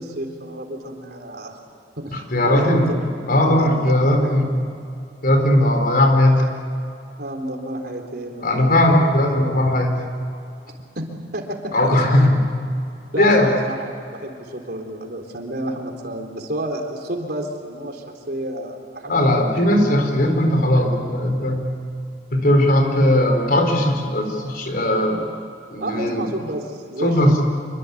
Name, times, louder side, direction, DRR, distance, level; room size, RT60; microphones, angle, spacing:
voice 1, 0.0-1.6 2.0-2.2 2.4-2.9 3.4-3.9 4.2-4.3 7.2-8.7 11.0-12.3 13.1-19.4 25.8-27.4, right 1 dB, 55° right, 3 dB, 3.8 m, -30 dB
voice 2, 2.1-2.9 3.3-4.5 5.2-6.4 8.4-10.0 11.7-12.4 13.2-13.5 19.1-21.6 22.3-25.2 25.7-26.3 27.0-27.3, left 1 dB, 55° left, 4 dB, 4.5 m, -18 dB
26.5 x 24.5 x 8.5 m, 2.6 s
head